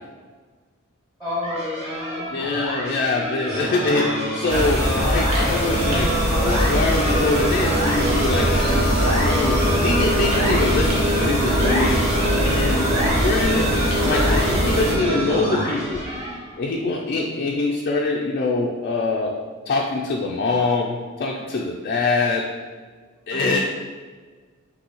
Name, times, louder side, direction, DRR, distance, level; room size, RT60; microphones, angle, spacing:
voice 1, 1.2-2.3 23.3-23.7, left 1 dB, 10° right, -9 dB, 1.2 m, -30 dB
sound 1, 1.4-16.6, equal, 30° right, 0.8 m, -29 dB
voice 2, 2.3-12.2 12.4-13.7 14.0-16.0 16.6-19.4 19.7-22.5 23.3-23.7, left 3 dB, 45° left, -2 dB, 0.4 m, -24 dB
sound 2, 3.5-16.4, equal, 50° right, 1.4 m, -26 dB
sound 3, 4.5-14.9, equal, 75° right, 1.0 m, -23 dB
5.4 x 2.7 x 3.0 m, 1.5 s
head